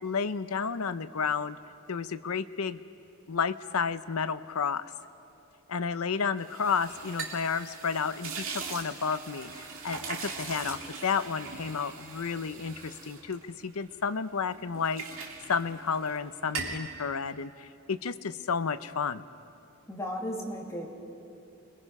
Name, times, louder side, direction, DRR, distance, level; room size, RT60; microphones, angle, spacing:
voice 1, 0.0-1.6 1.9-2.8 3.3-4.9 5.7-19.2, left 6 dB, 75° left, 13 dB, 0.7 m, -31 dB
sound 1, 6.4-14.1 14.5-16.2 16.4-16.9, right 4 dB, 60° right, 2.6 m, -40 dB
voice 2, 19.9-20.9, equal, 15° left, -1 dB, 2.5 m, -35 dB
30.0 x 22.0 x 5.5 m, 2.7 s
head